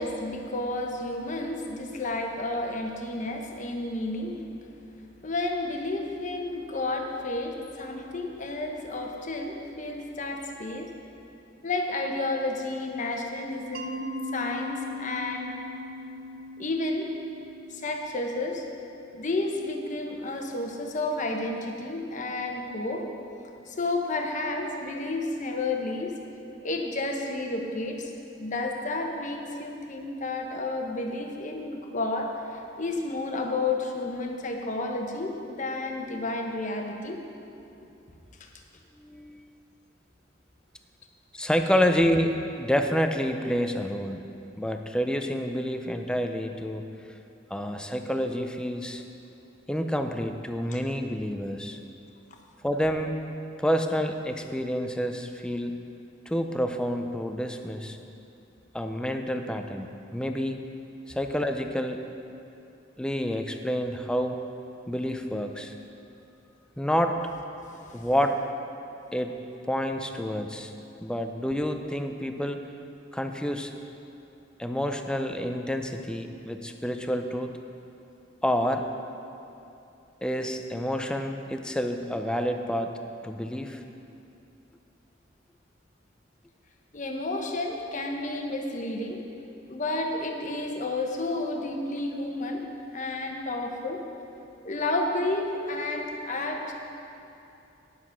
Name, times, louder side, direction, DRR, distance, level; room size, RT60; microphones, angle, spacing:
voice 1, 0.0-4.4 5.2-10.9 11.6-15.5 16.6-17.1 17.7-18.6 19.1-23.1 23.7-26.2 26.6-28.1 28.4-37.2 38.4-38.5 67.8-68.0 86.9-89.2 89.7-92.6 92.9-94.0 94.6-96.7, left 2 dB, 40° left, 2 dB, 1.0 m, -31 dB
Mallet percussion, 13.7-18.5, left 1 dB, 55° right, 0.7 m, -39 dB
voice 2, 39.0-39.4 41.3-44.2 44.6-46.8 47.5-49.0 49.7-51.8 52.6-53.1 53.6-55.8 56.3-58.0 58.7-60.6 61.1-62.0 63.0-64.4 64.9-65.7 66.8-67.2 67.9-68.4 69.1-69.3 69.7-70.7 71.0-72.6 73.1-73.7 74.6-77.6 78.4-78.8 80.2-82.9 83.2-83.8, equal, 5° left, 5 dB, 0.5 m, -28 dB
9.8 x 7.4 x 5.8 m, 2.7 s
head